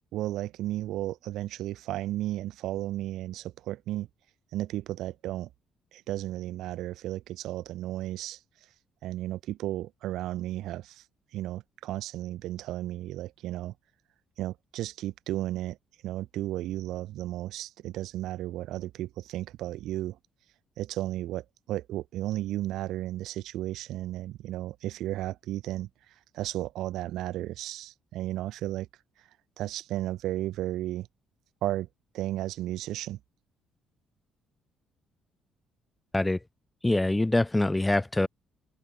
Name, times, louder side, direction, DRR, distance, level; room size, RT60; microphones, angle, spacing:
voice 1, 0.1-4.1 4.5-5.5 5.9-8.4 9.0-11.0 11.3-13.7 14.4-15.8 16.0-20.2 20.8-25.9 26.3-28.9 29.6-31.1 31.6-31.9 32.1-33.2, right 14 dB, 80° right, 2.1 m, -34 dB
voice 2, 36.8-38.3, left 2 dB, 10° left, 1.4 m, -24 dB
cardioid pair, 90°, 0 cm